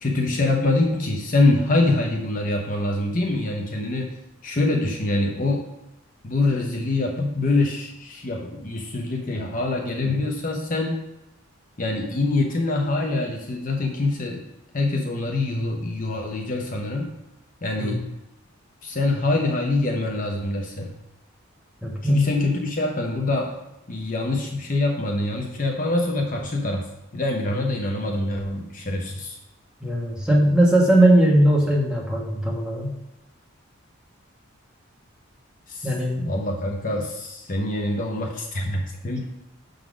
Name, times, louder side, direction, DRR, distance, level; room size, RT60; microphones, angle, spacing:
voice 1, 0.0-5.6 6.2-11.0 11.8-14.4 14.7-17.1 17.6-18.1 18.8-20.9 22.0-23.6 23.9-26.9 27.1-29.4 35.7-35.9 36.3-39.3, left 2 dB, 40° left, 1 dB, 0.7 m, -24 dB
voice 2, 21.8-22.3 29.8-32.9 35.8-36.3, right 1 dB, 5° right, -3 dB, 1.3 m, -19 dB
6.4 x 3.9 x 6.1 m, 0.93 s
head